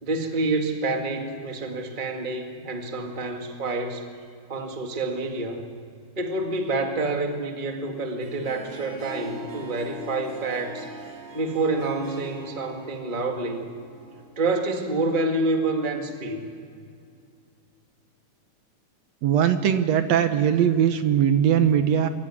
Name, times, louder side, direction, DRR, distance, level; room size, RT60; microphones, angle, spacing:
voice 1, 0.0-4.1 4.5-5.6 6.2-10.9 11.3-13.7 14.3-16.4, right 2 dB, 20° right, 3 dB, 1.4 m, -28 dB
Harp, 7.9-14.4, right 1 dB, 90° right, 4.4 m, -42 dB
voice 2, 19.2-22.1, right 9 dB, 65° right, 9 dB, 2.0 m, -20 dB
25.0 x 14.0 x 9.8 m, 2.4 s
omnidirectional pair, 3.7 m